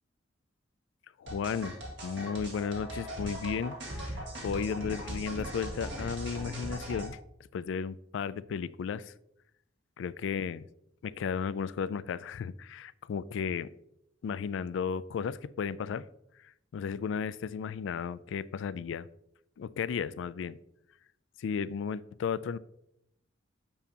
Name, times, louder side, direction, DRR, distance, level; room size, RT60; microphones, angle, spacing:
voice 1, 1.2-1.7 2.0-3.8 4.1-7.2 7.5-9.1 10.0-10.7 11.0-13.7 14.2-16.0 16.7-19.1 19.6-20.6 21.4-22.6, left 6 dB, 75° left, 17 dB, 0.3 m, -34 dB
sound 1, 1.3-7.1, equal, 65° right, 1.9 m, -39 dB
7.2 x 6.7 x 2.8 m, 0.79 s
head